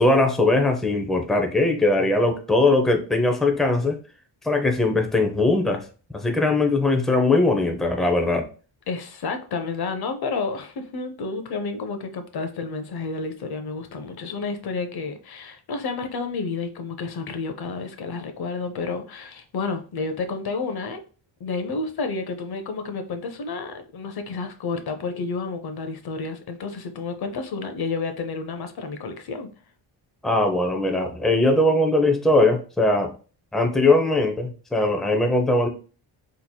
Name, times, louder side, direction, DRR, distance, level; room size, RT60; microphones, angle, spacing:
voice 1, 0.0-4.0 4.4-5.8 6.1-8.4 30.2-33.1 33.5-35.7, left 2 dB, ahead, 0.6 m, -20 dB
voice 2, 8.9-21.0 21.4-29.5, left 4 dB, 55° left, 0.7 m, -30 dB
3.8 x 2.9 x 2.2 m
cardioid pair, 85°, 45 cm